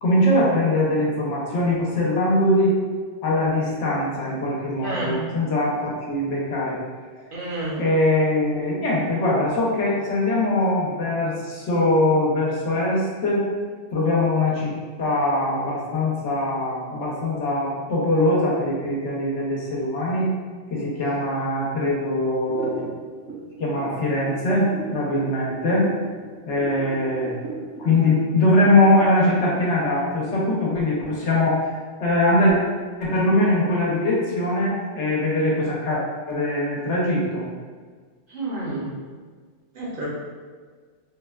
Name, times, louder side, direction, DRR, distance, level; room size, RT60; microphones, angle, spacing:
voice 1, 0.0-2.8 3.2-6.8 7.7-13.5 13.9-14.7 15.0-20.3 20.7-22.8 23.6-25.9 26.5-27.3 27.8-31.7 32.0-32.6 33.0-36.0 36.3-37.4, left 1 dB, 75° left, -4 dB, 1.0 m, -22 dB
voice 2, 4.8-5.2 7.3-7.8 38.3-38.9 39.7-40.1, right 2 dB, 55° right, -6 dB, 0.7 m, -29 dB
sound 1, 22.4-30.2, right 2 dB, 70° right, 1.2 m, -36 dB
3.6 x 2.1 x 2.3 m, 1.6 s
omnidirectional pair, 1.2 m